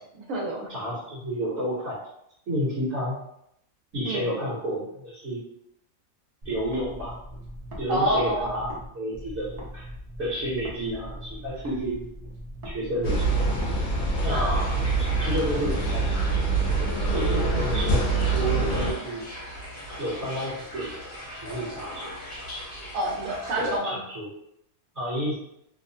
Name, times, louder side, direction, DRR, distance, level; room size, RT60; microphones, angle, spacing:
voice 1, 0.2-0.7 4.0-4.4 7.9-8.5 14.3-14.5 22.9-24.0, right 1 dB, 90° right, -2 dB, 1.2 m, -28 dB
voice 2, 0.7-2.0 2.5-3.2 3.9-5.4 6.4-7.2 7.8-9.9 10.2-12.0 12.6-13.6 14.2-16.2 17.0-19.2 20.0-21.1 21.4-22.1 23.6-24.3 24.9-25.4, equal, 60° right, -8 dB, 1.2 m, -31 dB
sound 1, 6.4-8.9 9.1-13.8, equal, 40° right, 0.6 m, -40 dB
sound 2, 13.0-18.9, right 3 dB, 65° left, 0.8 m, -25 dB
sound 3, 14.5-23.8, equal, 40° left, 1.0 m, -39 dB
2.7 x 2.2 x 2.7 m, 0.77 s
omnidirectional pair, 1.4 m